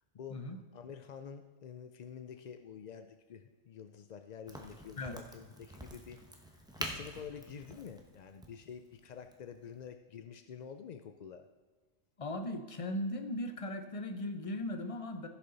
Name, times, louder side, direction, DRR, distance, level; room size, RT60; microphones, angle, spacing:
voice 1, 0.7-11.5, left 7 dB, 65° left, 7 dB, 0.4 m, -48 dB
Crack, 4.5-9.9, equal, 5° right, 0.9 m, -46 dB
voice 2, 12.2-15.3, left 1 dB, 30° left, 7 dB, 0.8 m, -38 dB
15.5 x 6.7 x 4.0 m, 1.4 s
omnidirectional pair, 1.3 m